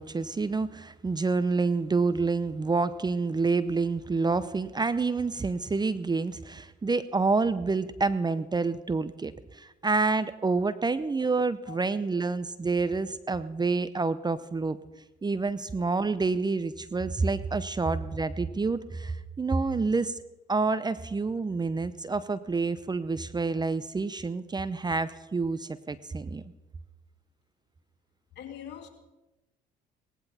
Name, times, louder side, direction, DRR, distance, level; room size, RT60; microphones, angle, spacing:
voice 1, 0.0-14.8 15.2-20.1 20.5-26.4, right 4 dB, 20° right, 0.7 m, -28 dB
voice 2, 28.4-28.9, left 9 dB, 60° left, 2.7 m, -42 dB
18.5 x 15.5 x 4.3 m
hypercardioid pair, 65°, 20 cm